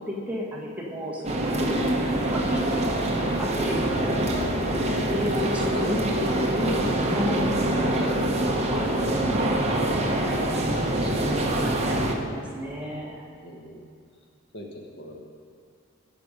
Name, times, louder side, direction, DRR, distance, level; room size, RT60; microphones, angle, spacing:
voice 1, 0.0-1.8 2.3-2.8 3.4-4.2 5.1-6.0 6.3-7.6 8.4-10.4 11.0-11.9 12.3-13.2, equal, 5° right, -4 dB, 1.6 m, -33 dB
voice 2, 1.1-1.5 5.4-5.9 7.9-8.2 11.3-12.4 13.4-13.9 14.5-15.2, left 1 dB, 55° left, 0 dB, 1.5 m, -41 dB
sound 1, 1.2-12.1, right 1 dB, 30° right, 1.0 m, -25 dB
16.5 x 5.6 x 5.3 m, 2.3 s
head